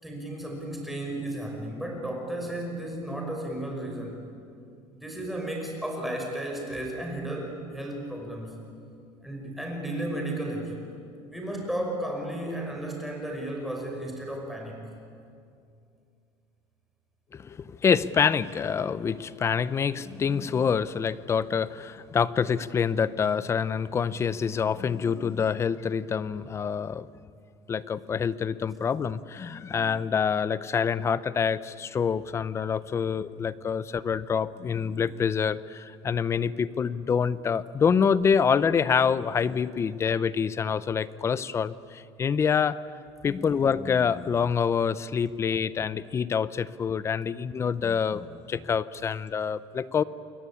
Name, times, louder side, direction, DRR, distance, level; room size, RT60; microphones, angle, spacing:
voice 1, 0.0-4.2 4.9-8.6 9.2-10.8 11.3-14.9, right 1 dB, ahead, 0 dB, 5.7 m, -34 dB
voice 2, 17.3-27.1 27.7-42.8 43.2-50.0, left 6 dB, 25° left, 17 dB, 0.7 m, -26 dB
28.5 x 22.5 x 8.7 m, 2.5 s
cardioid pair, 150°, 11 cm